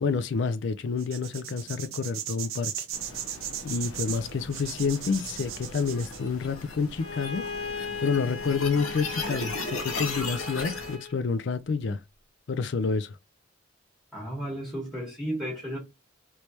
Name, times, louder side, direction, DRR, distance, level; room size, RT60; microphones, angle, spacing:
voice 1, 0.0-2.7 3.6-7.4 8.0-12.0 12.5-13.2, left 5 dB, 55° left, 0.4 m, -28 dB
sound 1, 1.0-6.2, right 10 dB, 80° right, 0.7 m, -36 dB
sound 2, 2.9-11.0, left 3 dB, 85° left, 1.0 m, -37 dB
Bowed string instrument, 7.0-11.2, left 4 dB, 30° left, 1.0 m, -37 dB
voice 2, 14.1-15.8, right 1 dB, ahead, 1.2 m, -33 dB
3.3 x 3.1 x 2.8 m
head